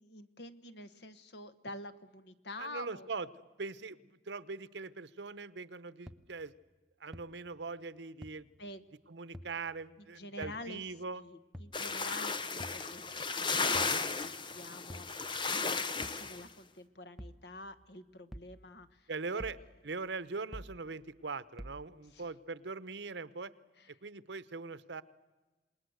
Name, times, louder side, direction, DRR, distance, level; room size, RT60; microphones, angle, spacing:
voice 1, 0.0-3.1 8.6-8.8 10.0-10.8 11.2-13.7 14.1-19.6 22.1-22.3 23.8-23.9, left 1 dB, 75° left, 12 dB, 1.3 m, -48 dB
voice 2, 2.6-4.0 4.3-6.5 7.0-8.5 9.1-11.2 19.1-19.6 19.8-23.5 23.9-25.0, right 4 dB, 90° right, 16 dB, 0.9 m, -41 dB
sound 1, 6.1-6.2 7.1-7.2 8.2-8.3 9.3-9.5 10.4-10.6 11.5-11.7 12.6-12.8 13.7-14.0 14.9-15.1 16.0-16.2 17.2-17.4 18.3-18.5 19.4-19.6 20.5-20.7 21.6-21.8, equal, ahead, 0.8 m, -46 dB
sound 2, 11.7-16.4, left 4 dB, 30° left, 0.9 m, -34 dB
27.5 x 20.0 x 8.0 m, 1.2 s
head